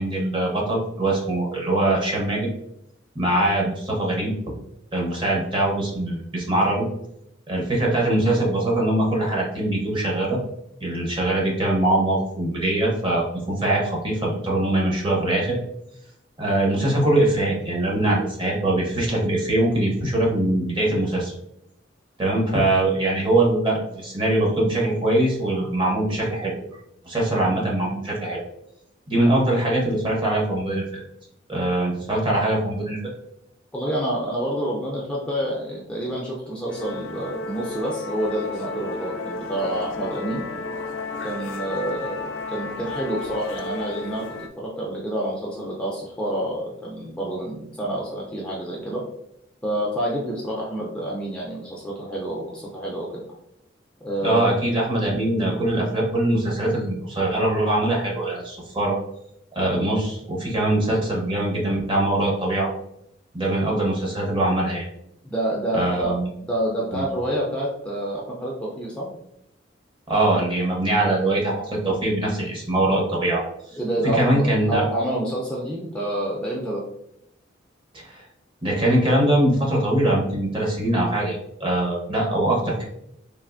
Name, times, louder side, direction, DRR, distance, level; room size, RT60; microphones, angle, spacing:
voice 1, 0.0-2.5 3.1-4.5 4.9-6.9 7.5-10.4 10.8-15.6 16.4-21.3 22.2-26.5 27.0-28.4 29.1-31.0 31.5-33.0 54.2-59.0 59.5-62.7 63.3-64.9 65.7-66.3 66.9-67.1 70.1-73.4 74.1-74.8 77.9-78.2 78.6-82.8, right 1 dB, 25° right, -2 dB, 0.8 m, -22 dB
voice 2, 33.7-40.4 41.2-44.2 44.6-49.0 49.6-53.2 54.0-54.6 65.2-66.1 66.5-69.1 73.7-76.8, right 1 dB, 5° left, -4 dB, 0.4 m, -28 dB
Musical instrument, 36.7-44.5, left 3 dB, 75° left, 0.4 m, -33 dB
3.3 x 2.5 x 2.5 m, 0.79 s
head